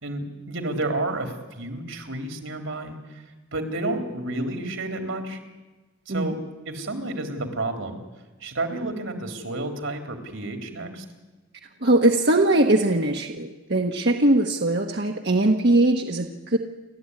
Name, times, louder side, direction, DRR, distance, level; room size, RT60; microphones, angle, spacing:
voice 1, 0.0-3.2 3.5-5.4 6.1-6.4 6.7-8.0 8.4-11.0, right 2 dB, 80° right, 5 dB, 3.5 m, -30 dB
voice 2, 11.8-16.6, right 1 dB, 55° right, 3 dB, 1.2 m, -21 dB
29.5 x 12.5 x 9.8 m, 1.2 s
head